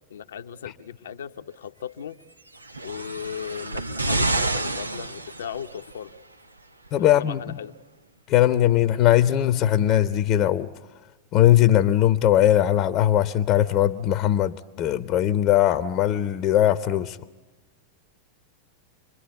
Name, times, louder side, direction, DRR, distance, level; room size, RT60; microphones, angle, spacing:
voice 1, 0.1-2.2 2.8-6.1 7.0-7.7, left 8 dB, 65° left, 0.8 m, -37 dB
sound 1, 2.5-5.9 6.9-7.0, right 2 dB, 80° right, 0.8 m, -28 dB
voice 2, 6.9-7.4 8.3-10.7 11.3-17.2, left 12 dB, 35° left, 0.9 m, -20 dB
27.5 x 22.0 x 8.2 m
figure-of-eight pair, 90°, 0 cm